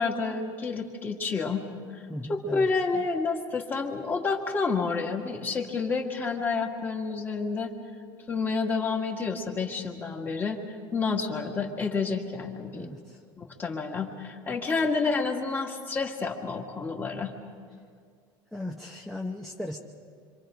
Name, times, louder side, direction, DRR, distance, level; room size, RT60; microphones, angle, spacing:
voice 1, 0.0-1.6 2.3-7.7 8.3-10.6 10.9-12.9 13.4-17.3, left 4 dB, 20° left, 2 dB, 1.9 m, -29 dB
voice 2, 2.1-2.7 2.9-3.0 12.7-13.2 18.5-19.8, left 1 dB, ahead, 0 dB, 0.8 m, -37 dB
27.0 x 26.0 x 5.1 m, 2.1 s
cardioid pair, 165°, 11 cm